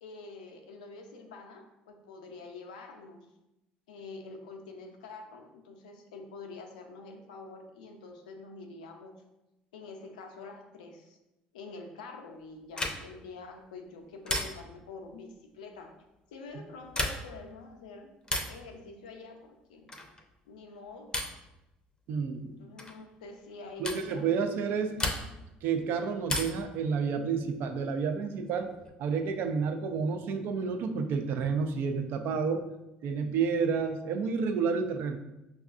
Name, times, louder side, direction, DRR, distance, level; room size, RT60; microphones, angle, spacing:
voice 1, 0.0-3.3 3.9-9.2 9.7-11.2 11.5-15.9 16.3-18.1 18.5-19.9 20.5-21.2 22.5-24.3, left 3 dB, 90° left, 3 dB, 0.4 m, -46 dB
sound 1, 12.7-13.3 14.3-14.9 16.8-17.4 18.2-18.6 19.9-20.2 21.1-21.5 22.8-23.0 23.8-24.1 25.0-25.5 26.3-26.7 28.2-28.9, left 1 dB, 20° left, 0.6 m, -34 dB
voice 2, 22.1-22.6 23.8-25.0 25.6-28.7 29.0-32.7 33.0-35.2, right 5 dB, 65° right, 5 dB, 0.4 m, -30 dB
5.3 x 2.3 x 2.4 m, 0.94 s
hypercardioid pair, 70°, 4 cm